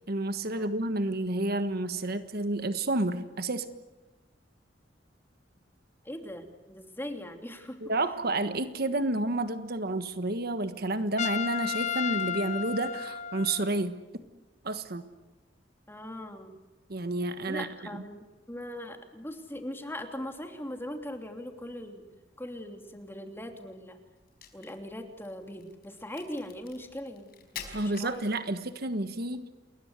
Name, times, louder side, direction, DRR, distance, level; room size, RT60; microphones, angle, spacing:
voice 1, 0.1-3.6 7.8-13.9 14.6-15.0 16.9-18.0 27.7-29.5, right 2 dB, 55° right, 10 dB, 1.4 m, -30 dB
voice 2, 6.0-7.8 15.9-16.5 17.5-22.0 22.4-24.0 24.5-28.3, left 1 dB, 10° left, 5 dB, 3.0 m, -40 dB
Trumpet, 11.2-13.9, left 8 dB, 40° left, 0.9 m, -33 dB
Crack, 24.2-28.8, left 7 dB, 55° left, 5.1 m, -47 dB
29.0 x 21.5 x 8.2 m, 1.1 s
head